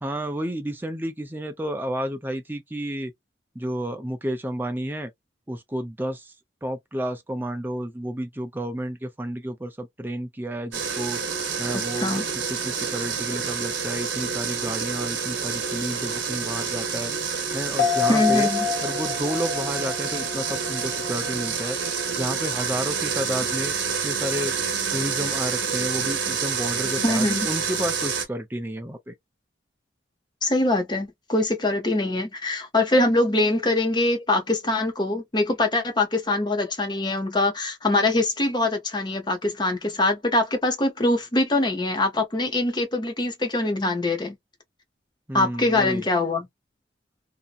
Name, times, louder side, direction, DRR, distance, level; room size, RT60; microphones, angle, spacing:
voice 1, 0.0-3.1 3.5-5.1 5.5-6.3 6.6-11.2 11.6-12.2 12.5-17.1 17.5-18.5 18.8-21.8 22.2-23.7 24.0-24.5 24.9-29.1 45.3-46.0, equal, 10° right, 0.5 m, -31 dB
sound 1, 10.7-28.3, right 6 dB, 80° right, 1.0 m, -28 dB
sound 2, 17.8-21.5 21.8-21.9, left 7 dB, 65° left, 0.7 m, -27 dB
voice 2, 18.1-18.7 27.0-27.5 30.4-44.4 45.3-46.5, left 2 dB, 25° left, 0.8 m, -23 dB
2.8 x 2.2 x 2.4 m
head